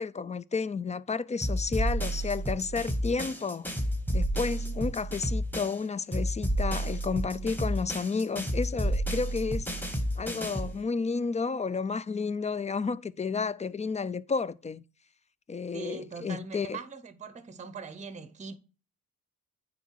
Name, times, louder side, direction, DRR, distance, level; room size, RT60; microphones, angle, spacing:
voice 1, 0.0-3.7 4.1-14.8 15.5-16.8, left 4 dB, 20° left, 0.3 m, -31 dB
sound 1, 1.4-5.8 6.1-10.8, right 1 dB, 5° left, 1.5 m, -31 dB
voice 2, 15.7-18.5, right 5 dB, 20° right, 0.8 m, -41 dB
9.4 x 3.7 x 4.6 m
cardioid pair, 90°, 35 cm